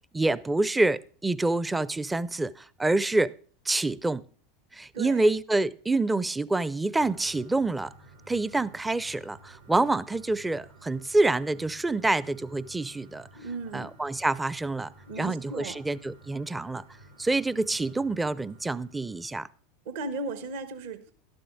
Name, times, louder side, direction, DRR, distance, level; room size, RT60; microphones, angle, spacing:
voice 1, 0.1-3.3 3.7-4.2 4.7-7.9 8.3-13.3 13.7-14.9 15.2-16.8 17.2-19.5, right 2 dB, 10° right, 0.5 m, -27 dB
voice 2, 4.9-5.3 13.3-13.9 15.1-15.8 19.8-21.1, right 3 dB, 60° right, 1.3 m, -36 dB
sound 1, 7.0-19.5, right 2 dB, 85° right, 2.5 m, -54 dB
12.5 x 11.5 x 3.8 m
figure-of-eight pair, 85°, 0 cm